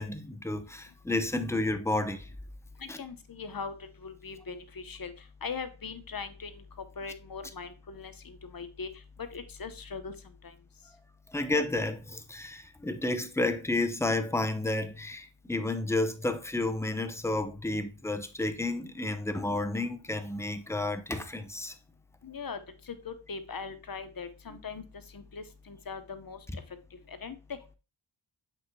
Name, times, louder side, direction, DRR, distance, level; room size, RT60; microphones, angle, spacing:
voice 1, 0.0-2.3 2.9-3.0 11.3-21.7, left 2 dB, 5° left, 0.7 m, -31 dB
voice 2, 2.8-3.7 4.0-5.1 5.4-6.6 7.0-8.9 9.3-10.1 10.4-10.5 22.2-22.6 22.9-24.8 25.1-26.6 27.2-27.4, left 5 dB, 45° left, 0.9 m, -40 dB
7.8 x 6.3 x 2.2 m
wide cardioid pair, 100°, 50 cm